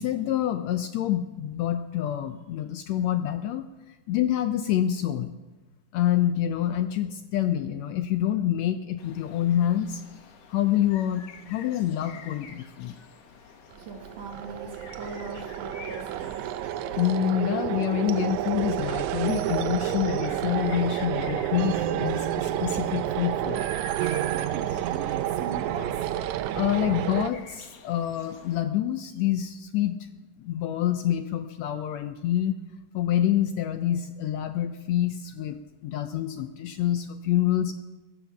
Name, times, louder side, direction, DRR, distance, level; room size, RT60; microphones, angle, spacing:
voice 1, 0.0-3.7 4.1-5.3 5.9-10.0 10.5-12.9 17.0-23.7 26.5-30.0 30.4-32.6 32.9-37.7, left 11 dB, 75° left, 9 dB, 1.7 m, -27 dB
sound 1, 9.0-28.6, left 6 dB, 60° left, 2.1 m, -49 dB
voice 2, 13.4-16.5 24.3-26.1, right 4 dB, 60° right, 1 dB, 3.3 m, -40 dB
sound 2, 13.7-27.3, right 12 dB, 80° right, 1.9 m, -29 dB
16.0 x 10.5 x 7.3 m, 1.2 s
omnidirectional pair, 3.5 m